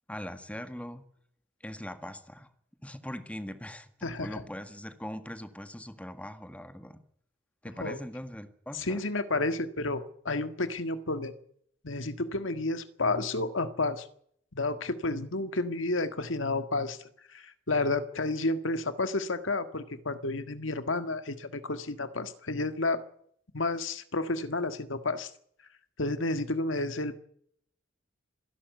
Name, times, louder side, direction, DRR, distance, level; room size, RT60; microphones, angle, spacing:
voice 1, 0.1-1.0 1.6-2.5 2.8-7.0 7.6-9.0, left 1 dB, 5° left, 9 dB, 1.8 m, -41 dB
voice 2, 4.0-4.4 7.8-8.0 8.7-11.3 11.8-14.1 14.5-17.0 17.3-23.0 23.5-25.3 26.0-27.2, left 2 dB, 80° left, 10 dB, 1.8 m, -31 dB
26.5 x 11.5 x 9.4 m, 0.67 s
head